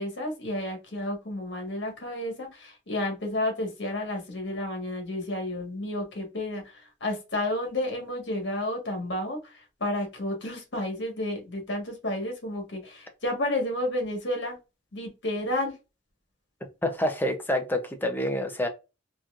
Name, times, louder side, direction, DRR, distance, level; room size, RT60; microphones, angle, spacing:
voice 1, 0.0-14.6 14.9-15.8, left 1 dB, 65° left, 1.4 m, -31 dB
voice 2, 16.8-18.7, left 1 dB, 10° left, 0.6 m, -27 dB
4.1 x 2.9 x 2.4 m
head